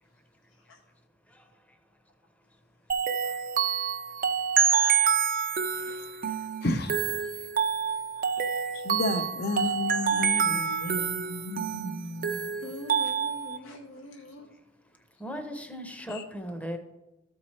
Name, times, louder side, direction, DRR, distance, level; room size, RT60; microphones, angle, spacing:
sound 1, 2.9-13.6, right 7 dB, 45° right, 0.5 m, -27 dB
voice 1, 6.6-7.1 8.8-12.5 16.1-16.2, left 2 dB, 55° left, 7 dB, 0.8 m, -32 dB
voice 2, 10.1-11.3 11.7-11.8 12.6-14.5, equal, 80° left, 2 dB, 0.8 m, -44 dB
voice 3, 15.2-16.8, equal, 5° left, 6 dB, 0.7 m, -36 dB
13.5 x 4.7 x 4.3 m, 0.99 s
head